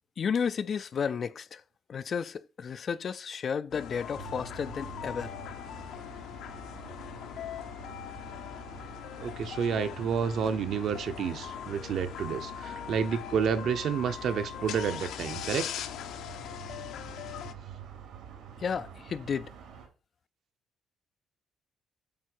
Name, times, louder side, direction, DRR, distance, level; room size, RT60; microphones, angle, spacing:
voice 1, 0.2-1.6 1.9-5.3 18.6-19.5, left 6 dB, 35° left, 0.3 m, -32 dB
sound 1, 3.7-17.5, left 10 dB, 70° left, 0.7 m, -41 dB
sound 2, 4.1-19.9, right 7 dB, 80° right, 2.9 m, -48 dB
voice 2, 9.2-15.7, right 7 dB, 50° right, 0.8 m, -30 dB
8.6 x 4.6 x 4.6 m
cardioid pair, 165°, 0 cm